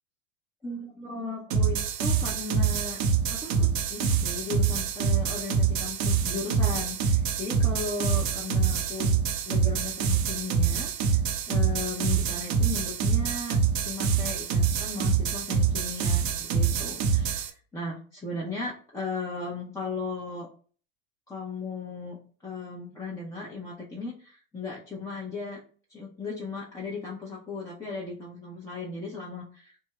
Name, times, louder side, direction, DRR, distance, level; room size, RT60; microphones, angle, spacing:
voice 1, 0.6-3.0 3.3-9.1 9.4-11.2 11.5-13.6 13.8-20.5 21.3-25.6 25.9-29.8, left 3 dB, 10° left, -6 dB, 0.8 m, -36 dB
sound 1, 1.5-17.5, right 6 dB, 45° right, 0.8 m, -26 dB
3.5 x 2.2 x 4.3 m, 0.42 s
hypercardioid pair, 105°, 39 cm